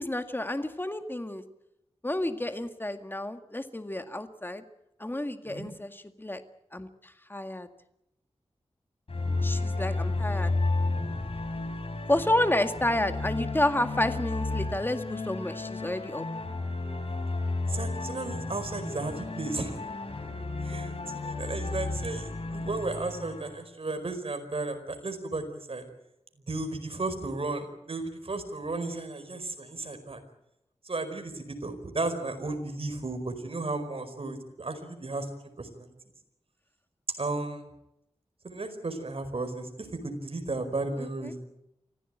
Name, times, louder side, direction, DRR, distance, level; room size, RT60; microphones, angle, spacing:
voice 1, 0.0-1.4 2.0-4.6 5.0-6.4 6.7-7.7 9.4-10.5 12.1-16.3 41.0-41.3, left 1 dB, 20° left, 8 dB, 1.9 m, -30 dB
sound 1, 9.1-23.6, left 2 dB, 55° left, 4.4 m, -32 dB
voice 2, 17.6-19.8 20.6-25.4 25.7-25.8 26.5-30.2 30.8-35.3 35.6-35.9 37.2-37.7 38.4-41.4, right 2 dB, 55° right, 7 dB, 4.9 m, -34 dB
25.0 x 16.0 x 9.1 m, 0.84 s
wide cardioid pair, 60°, 11 cm